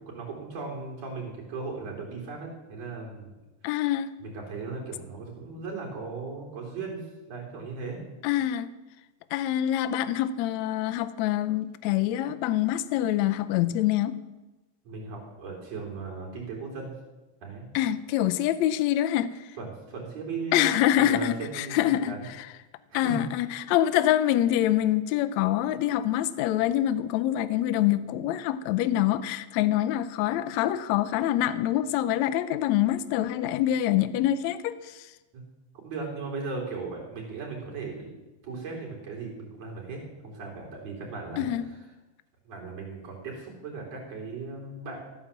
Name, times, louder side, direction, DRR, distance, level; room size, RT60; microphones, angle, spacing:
voice 1, 0.0-3.3 4.2-8.0 14.8-16.9 17.4-17.8 19.6-22.3 22.9-23.2 35.3-35.4 35.8-38.2 38.4-41.8 42.4-45.0, right 4 dB, 60° right, 5.0 m, -37 dB
voice 2, 3.6-4.1 8.2-8.7 9.3-14.2 17.7-19.4 20.5-22.1 22.9-35.1 41.4-41.7, left 12 dB, 80° left, 1.8 m, -25 dB
14.5 x 9.7 x 7.3 m
omnidirectional pair, 3.4 m